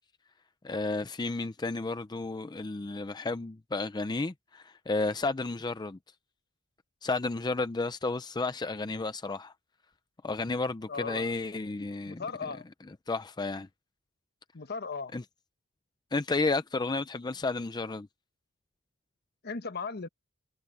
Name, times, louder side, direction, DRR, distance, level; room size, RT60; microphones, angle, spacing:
voice 1, 0.6-6.0 7.0-9.5 10.2-12.2 13.1-13.7 15.1-15.2 16.1-18.1, left 3 dB, 20° left, 0.5 m, -32 dB
voice 2, 10.9-11.3 12.1-12.6 14.5-15.1 19.4-20.1, left 4 dB, 50° left, 1.1 m, -37 dB
head